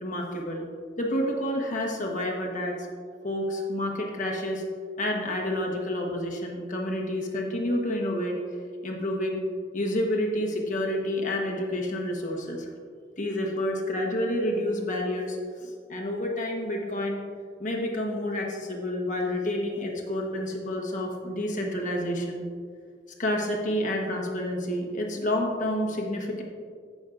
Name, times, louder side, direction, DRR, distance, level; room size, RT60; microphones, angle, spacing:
voice 1, 0.0-0.7 1.0-2.9 3.2-4.6 5.0-8.4 8.8-9.4 9.7-12.7 13.2-17.2 17.6-22.4 23.2-26.4, left 1 dB, 45° left, 0 dB, 1.3 m, -29 dB
14.5 x 6.2 x 2.6 m, 2.1 s
head